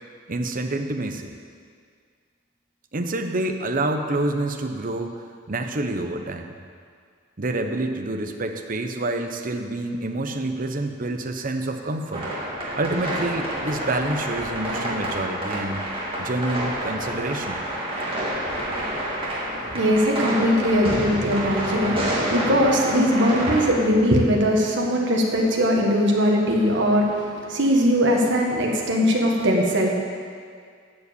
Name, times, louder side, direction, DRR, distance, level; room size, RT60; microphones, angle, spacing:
voice 1, 0.3-1.3 2.9-6.6 7.4-12.3 12.7-15.8 16.2-17.6, right 2 dB, 45° right, 5 dB, 0.8 m, -27 dB
sound 1, 12.1-23.7, right 1 dB, 30° right, 2.2 m, -28 dB
voice 2, 19.7-29.9, equal, 65° right, 0 dB, 1.7 m, -20 dB
12.0 x 5.1 x 8.2 m, 2.1 s
head